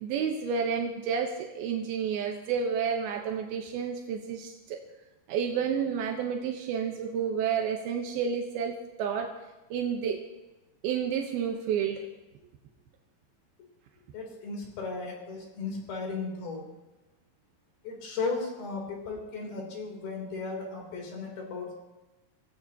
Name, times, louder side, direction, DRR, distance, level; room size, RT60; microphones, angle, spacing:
voice 1, 0.0-4.8 5.3-9.3 9.7-10.2 10.8-12.0, right 7 dB, 85° right, 2 dB, 3.0 m, -30 dB
voice 2, 14.1-16.7 17.8-21.7, left 4 dB, 75° left, 0 dB, 5.4 m, -35 dB
25.5 x 16.5 x 3.0 m, 1.0 s
omnidirectional pair, 4.4 m